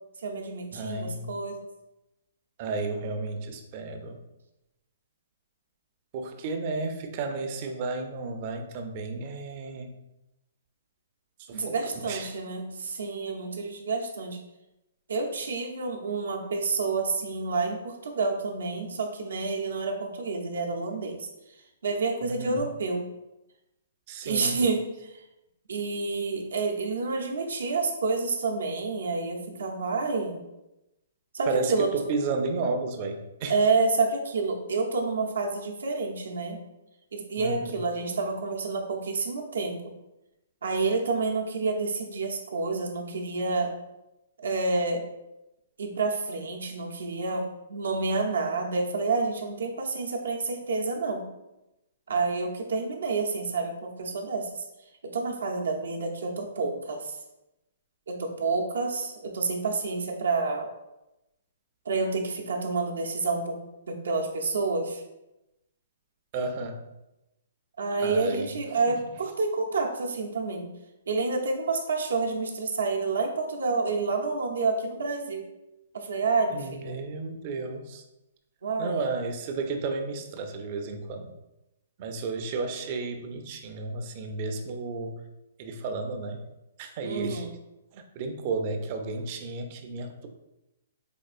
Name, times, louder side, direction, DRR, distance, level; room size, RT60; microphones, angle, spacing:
voice 1, 0.2-1.7 11.5-14.4 15.1-21.3 21.8-23.1 24.2-25.2 25.7-30.4 31.3-31.9 33.5-36.6 37.1-39.8 40.6-43.7 44.4-45.0 45.8-51.3 52.1-54.7 55.0-57.2 58.1-60.7 61.9-63.6 63.9-65.0 67.8-70.7 71.1-75.4 75.9-77.0 78.6-79.0 87.0-87.5, right 3 dB, 85° right, 1 dB, 0.6 m, -29 dB
voice 2, 0.7-1.3 2.6-4.2 6.1-10.0 11.5-12.3 22.2-22.7 24.1-24.6 31.5-33.5 37.4-37.8 66.3-66.8 68.0-68.5 68.9-69.0 76.5-78.0 78.8-81.3 82.0-85.2 85.6-86.4 86.8-87.4 87.9-90.3, right 3 dB, 40° right, 5 dB, 0.4 m, -33 dB
4.4 x 2.4 x 2.4 m, 0.95 s
hypercardioid pair, 145°, 0 cm